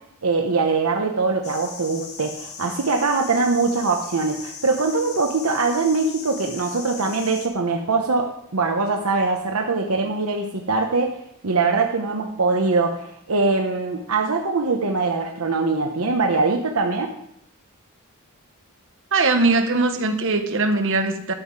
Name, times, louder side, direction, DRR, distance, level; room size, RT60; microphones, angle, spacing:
voice 1, 0.2-11.2 11.4-17.1, right 3 dB, 80° right, 3 dB, 1.0 m, -22 dB
sound 1, 1.4-7.5, left 5 dB, 50° left, 1.4 m, -38 dB
voice 2, 19.1-21.3, right 3 dB, 60° right, 6 dB, 1.3 m, -20 dB
12.5 x 7.5 x 4.7 m, 0.73 s
head